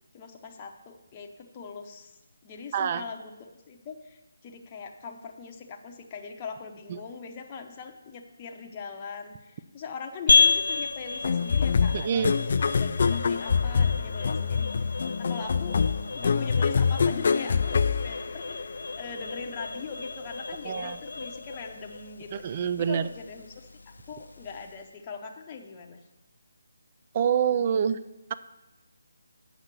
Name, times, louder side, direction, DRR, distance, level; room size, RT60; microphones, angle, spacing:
voice 1, 0.1-15.8 16.1-18.6 19.0-26.0, left 5 dB, 20° left, 2 dB, 0.8 m, -41 dB
voice 2, 2.7-3.0 6.9-7.0 11.9-12.3 20.6-21.0 22.3-23.1 27.1-28.0, right 8 dB, 30° right, 13 dB, 0.4 m, -26 dB
sound 1, 10.3-24.9, left 4 dB, 85° left, 0.8 m, -31 dB
sound 2, 11.2-18.8, left 5 dB, 50° left, 0.3 m, -25 dB
8.1 x 6.4 x 6.0 m, 1.0 s
hypercardioid pair, 165°, 0 cm